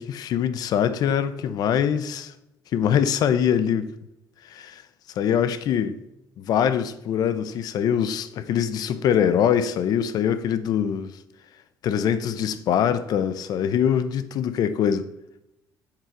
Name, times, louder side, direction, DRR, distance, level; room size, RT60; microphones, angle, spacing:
voice 1, 0.0-2.3 2.7-3.9 4.4-4.8 5.2-6.0 6.4-11.1 11.8-15.1, left 8 dB, 60° left, 0.5 m, -23 dB
7.5 x 4.6 x 3.7 m
cardioid pair, 130°, 8 cm